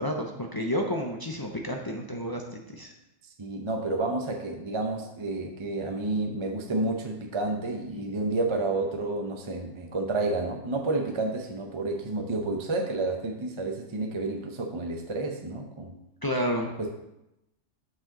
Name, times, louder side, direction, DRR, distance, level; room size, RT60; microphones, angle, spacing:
voice 1, 0.0-2.9 7.9-8.0 16.2-16.7, equal, 30° left, 1 dB, 0.4 m, -30 dB
voice 2, 3.4-15.9 16.8-16.9, right 2 dB, 30° right, 2 dB, 0.6 m, -30 dB
7.4 x 6.0 x 3.8 m, 0.90 s
omnidirectional pair, 1.3 m